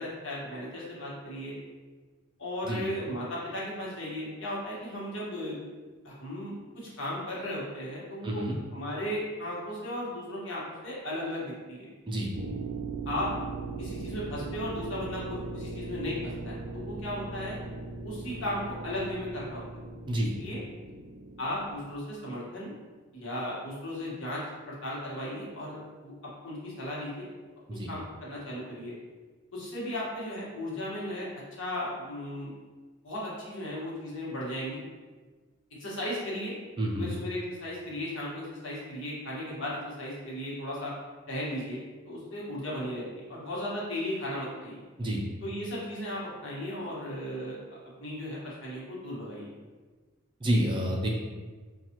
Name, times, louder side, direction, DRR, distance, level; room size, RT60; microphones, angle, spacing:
voice 1, 0.0-1.5 2.4-5.6 6.0-8.4 8.7-11.9 13.0-13.3 13.8-17.6 18.0-19.6 20.2-20.6 21.4-22.7 23.1-27.3 27.7-28.9 29.5-32.5 33.0-34.8 35.8-36.5 36.9-40.9 41.3-44.8 45.4-47.6 47.8-49.5, left 1 dB, 60° left, -6 dB, 1.3 m, -36 dB
voice 2, 8.2-8.6 12.1-12.3 20.1-20.3 27.7-27.9 36.8-37.1 45.0-45.2 50.4-51.1, right 1 dB, 20° right, -1 dB, 0.4 m, -28 dB
sound 1, 12.3-21.8, right 3 dB, 80° right, 0.5 m, -39 dB
5.7 x 2.3 x 2.9 m, 1.4 s
head